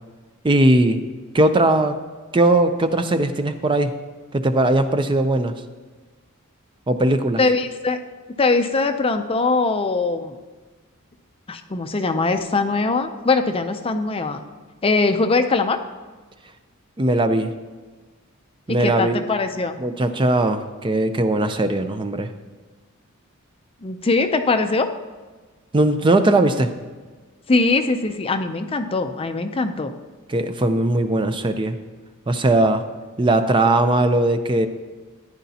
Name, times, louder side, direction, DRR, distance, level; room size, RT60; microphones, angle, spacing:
voice 1, 0.4-1.0 1.3-2.0 2.3-3.9 4.3-5.5 6.9-7.4 17.0-17.5 18.7-19.2 19.8-22.3 25.7-26.7 30.3-31.7 32.3-32.8 33.2-34.7, right 2 dB, 25° right, 8 dB, 0.5 m, -19 dB
voice 2, 7.4-8.0 8.4-10.4 11.5-14.4 14.8-15.8 18.7-19.8 23.8-24.9 27.5-29.9, left 3 dB, 25° left, 7 dB, 0.5 m, -21 dB
14.5 x 10.0 x 2.8 m, 1.4 s
head